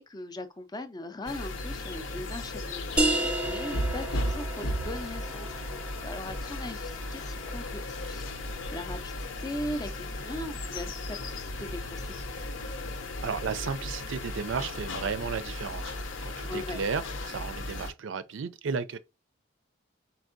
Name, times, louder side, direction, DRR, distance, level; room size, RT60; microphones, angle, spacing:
voice 1, 0.0-8.2 8.7-12.4 16.4-16.8, left 1 dB, 20° left, 0.4 m, -39 dB
sound 1, 1.3-17.9, left 1 dB, 70° left, 0.7 m, -36 dB
sound 2, 3.0-8.3, right 2 dB, 5° right, 0.7 m, -33 dB
voice 2, 13.2-19.0, right 5 dB, 65° right, 0.4 m, -34 dB
4.5 x 4.2 x 2.6 m
head